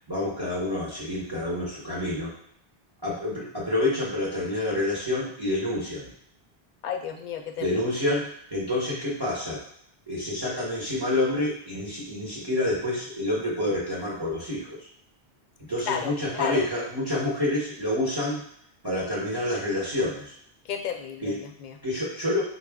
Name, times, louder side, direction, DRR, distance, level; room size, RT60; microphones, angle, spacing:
voice 1, 0.1-2.3 3.0-6.1 7.6-9.6 10.1-14.8 15.7-18.4 18.8-20.3 21.2-21.4 21.8-22.4, left 1 dB, 25° right, -6 dB, 0.9 m, -28 dB
voice 2, 6.8-7.8 15.8-16.6 20.7-21.8, left 7 dB, 60° left, 4 dB, 0.6 m, -32 dB
4.5 x 2.2 x 3.5 m, 0.67 s
omnidirectional pair, 1.1 m